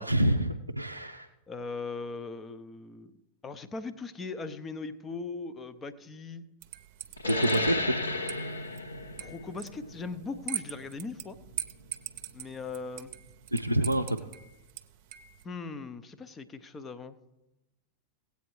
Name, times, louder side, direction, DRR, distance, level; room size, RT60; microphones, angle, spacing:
voice 1, 0.0-1.3 7.3-7.9 13.5-14.1, right 1 dB, 85° right, 3 dB, 0.4 m, -27 dB
voice 2, 1.5-3.1 3.4-6.4 7.2-7.8 9.2-11.4 12.3-13.1 15.4-17.2, left 4 dB, 20° left, 12 dB, 0.6 m, -39 dB
sound 1, 6.6-15.5, right 12 dB, 45° right, 0.7 m, -43 dB
sound 2, 7.2-12.3, left 2 dB, 80° left, 1.0 m, -34 dB
17.0 x 8.3 x 3.2 m, 0.97 s
figure-of-eight pair, 90°, 0 cm